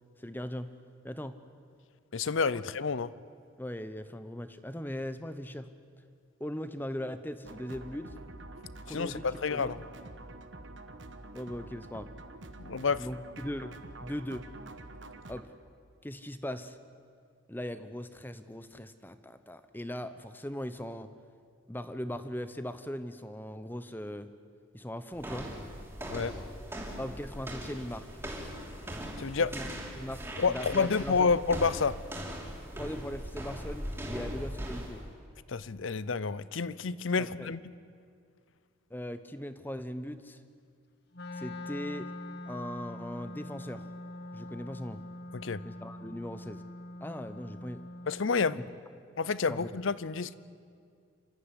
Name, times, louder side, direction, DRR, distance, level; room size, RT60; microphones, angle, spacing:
voice 1, 0.2-0.7 1.0-1.4 3.6-5.7 6.4-8.1 8.8-9.8 11.3-12.1 13.0-14.4 15.3-15.5 16.0-16.8 17.5-21.1 21.7-24.3 24.7-25.5 27.0-28.1 29.6-29.7 29.9-30.2 30.5-31.3 32.7-35.0 37.2-37.5 38.9-40.4 41.3-42.1 42.5-43.8 44.3-45.0 45.6-46.6 47.0-47.8 49.5-49.7, left 1 dB, 10° left, 11 dB, 0.8 m, -39 dB
voice 2, 2.1-3.1 8.9-9.8 12.6-13.1 26.1-26.3 29.2-29.5 30.4-32.0 35.5-37.6 45.3-45.6 48.1-48.6 49.2-50.3, left 5 dB, 70° left, 18 dB, 0.7 m, -29 dB
sound 1, 7.5-15.4, right 2 dB, 60° right, 1.3 m, -47 dB
sound 2, 25.2-35.1, equal, 10° right, 3.1 m, -40 dB
Wind instrument woodwind instrument, 41.1-48.3, left 1 dB, 50° left, 1.3 m, -43 dB
27.5 x 13.5 x 9.8 m, 2.2 s
head